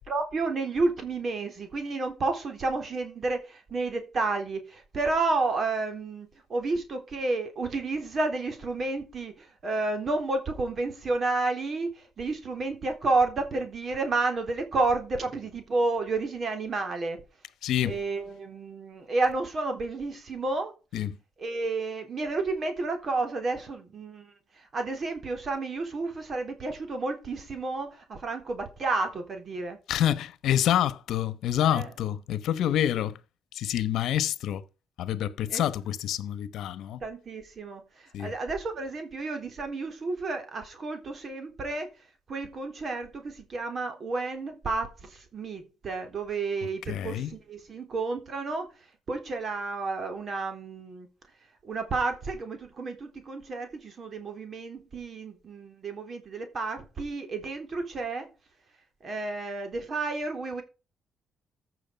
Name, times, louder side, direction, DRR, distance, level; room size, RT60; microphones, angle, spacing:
voice 1, 0.1-17.2 17.8-20.7 21.4-24.3 24.7-29.8 31.6-31.9 35.5-35.6 37.0-37.8 38.2-41.9 42.3-48.7 49.1-51.1 51.6-58.3 59.0-60.6, right 3 dB, 45° right, 3.7 m, -31 dB
voice 2, 17.6-18.0 20.9-21.2 29.9-33.2 33.5-34.6 35.0-37.0 38.1-38.3 46.6-47.3, left 11 dB, 80° left, 1.0 m, -27 dB
14.5 x 6.4 x 5.2 m
cardioid pair, 90°, 0 cm